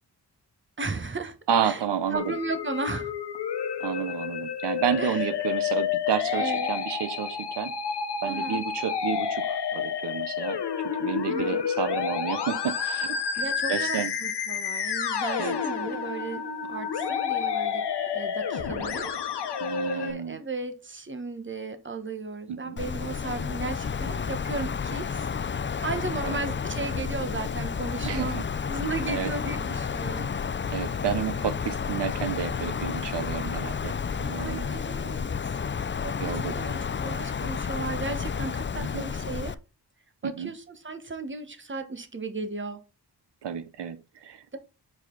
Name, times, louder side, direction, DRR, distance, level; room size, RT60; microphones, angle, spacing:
voice 1, 0.8-1.4 1.6-1.8 2.1-3.1 5.0-5.2 6.3-6.7 8.3-8.6 11.3-11.6 13.4-17.8 18.1-19.1 19.6-25.2 25.8-30.3 34.4-35.5 36.0-39.6 40.2-42.8 44.5-44.6, right 3 dB, 30° right, 1.2 m, -35 dB
voice 2, 1.5-2.3 3.8-7.7 8.2-10.6 11.0-14.1 15.4-15.6 19.6-20.4 22.5-22.8 26.2-26.4 28.0-28.4 29.1-29.3 30.7-33.9 34.2-34.7 36.2-36.5 38.9-39.0 40.2-40.5 43.4-44.6, right 8 dB, 85° right, 0.7 m, -30 dB
Musical instrument, 2.1-20.1, left 7 dB, 80° left, 1.0 m, -30 dB
Wind, 22.8-39.5, left 6 dB, 30° left, 0.4 m, -31 dB
6.6 x 4.9 x 3.8 m
wide cardioid pair, 75°, 40 cm